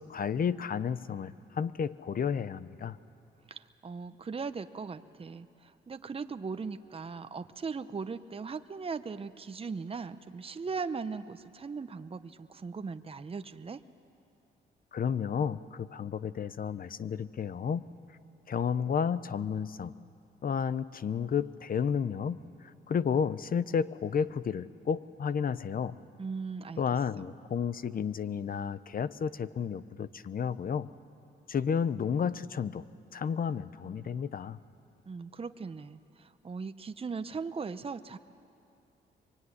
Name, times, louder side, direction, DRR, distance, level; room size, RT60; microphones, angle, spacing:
voice 1, 0.0-3.0 14.9-17.8 18.5-19.9 20.4-22.4 22.6-26.0 26.8-30.9 31.5-32.8 33.1-34.6, left 7 dB, 50° left, 15 dB, 0.8 m, -32 dB
voice 2, 3.5-13.8 26.2-26.8 35.1-38.2, right 5 dB, 30° right, 10 dB, 0.9 m, -39 dB
24.0 x 23.5 x 9.8 m, 2.6 s
cardioid pair, 80°, 19 cm